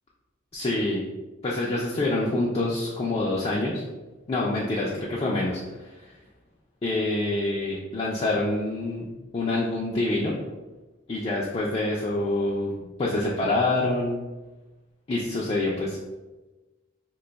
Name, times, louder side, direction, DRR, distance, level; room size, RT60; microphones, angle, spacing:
voice 1, 0.5-1.0 1.4-3.8 4.3-6.0 6.8-9.1 9.3-10.3 11.1-14.2 15.1-16.0, left 2 dB, 30° left, -4 dB, 0.3 m, -26 dB
2.7 x 2.2 x 3.8 m, 1.1 s
head